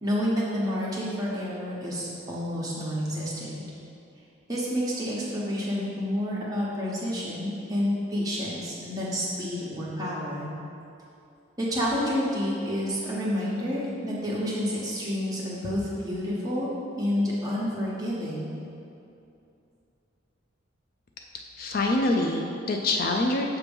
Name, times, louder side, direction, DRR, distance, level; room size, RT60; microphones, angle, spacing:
voice 1, 0.0-3.6 4.5-10.5 11.6-16.7 17.0-18.5, equal, 20° right, -6 dB, 1.0 m, -29 dB
voice 2, 21.6-23.6, left 2 dB, 45° left, 2 dB, 0.3 m, -25 dB
6.9 x 3.0 x 5.2 m, 2.6 s
head